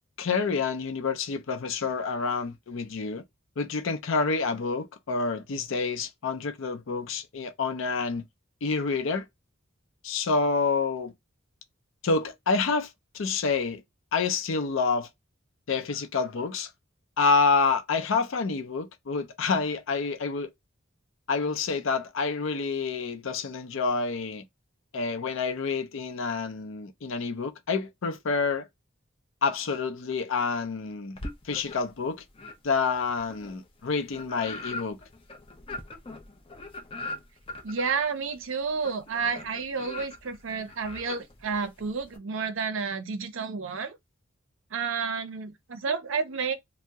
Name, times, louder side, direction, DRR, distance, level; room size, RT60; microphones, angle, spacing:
voice 1, 0.2-3.2 3.6-8.2 8.6-9.3 10.0-11.1 12.0-13.8 14.1-15.1 15.7-16.7 17.2-20.5 21.3-24.4 24.9-28.7 29.4-31.2 31.4-32.2 32.6-35.0, left 4 dB, 70° left, 0.5 m, -28 dB
sound 1, 31.2-32.0 32.3-42.2, left 2 dB, 25° left, 0.5 m, -41 dB
voice 2, 37.6-44.0 44.7-46.5, right 5 dB, 70° right, 0.5 m, -30 dB
2.7 x 2.0 x 3.4 m
head